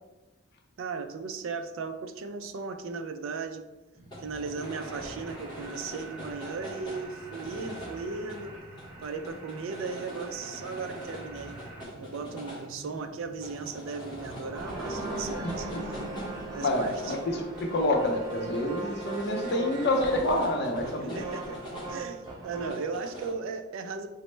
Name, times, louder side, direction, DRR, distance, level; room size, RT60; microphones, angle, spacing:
voice 1, 0.8-3.6 4.2-8.6 9.0-11.6 12.0-16.1 16.5-17.2 21.0-21.6 21.9-24.1, right 4 dB, 65° right, 7 dB, 0.3 m, -37 dB
sound 1, 3.9-23.3, equal, 20° left, 0.8 m, -44 dB
sound 2, 4.6-11.8, right 2 dB, 40° right, 1.3 m, -47 dB
sound 3, 14.0-22.9, right 2 dB, 20° right, 0.8 m, -38 dB
voice 2, 15.4-16.3 16.6-21.2, left 1 dB, 50° left, 2 dB, 0.5 m, -28 dB
4.1 x 2.0 x 3.1 m, 1.1 s
head